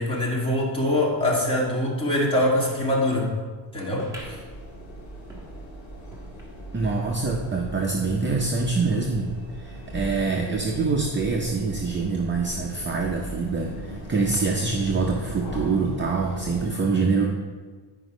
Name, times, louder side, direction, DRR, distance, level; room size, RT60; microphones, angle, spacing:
voice 1, 0.0-3.3 3.7-4.4, left 1 dB, 10° left, -5 dB, 1.9 m, -24 dB
sound 1, 4.0-6.9 7.4-7.5 7.7-7.8 8.6-8.7, right 1 dB, 5° right, 1.4 m, -46 dB
sound 2, 4.1-16.7, equal, 50° left, 2.6 m, -38 dB
voice 2, 6.7-9.3 9.6-17.3, right 4 dB, 25° right, 0 dB, 0.6 m, -25 dB
10.0 x 5.1 x 5.0 m, 1.4 s
cardioid pair, 165°, 47 cm